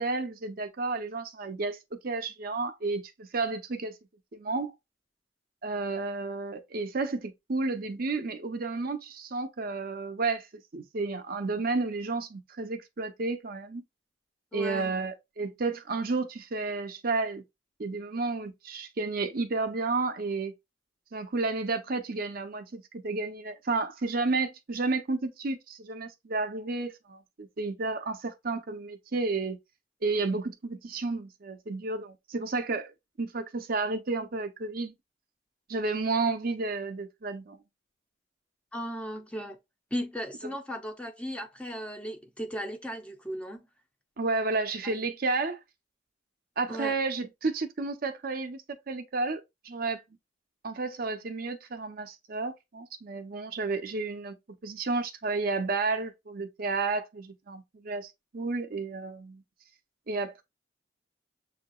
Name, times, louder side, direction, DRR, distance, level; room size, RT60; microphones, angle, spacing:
voice 1, 0.0-1.8 2.0-3.9 4.3-4.7 5.6-10.5 10.7-13.8 14.5-17.4 17.8-20.5 21.1-29.6 30.0-32.9 33.2-34.9 35.7-37.6 44.2-45.6 46.6-50.0 50.6-54.3 54.6-59.4 60.1-60.4, right 3 dB, 55° right, 0.7 m, -31 dB
voice 2, 14.5-14.9 38.7-39.6 39.9-43.7 44.8-45.1 46.7-46.9, equal, 5° left, 0.7 m, -36 dB
6.9 x 2.8 x 2.3 m
head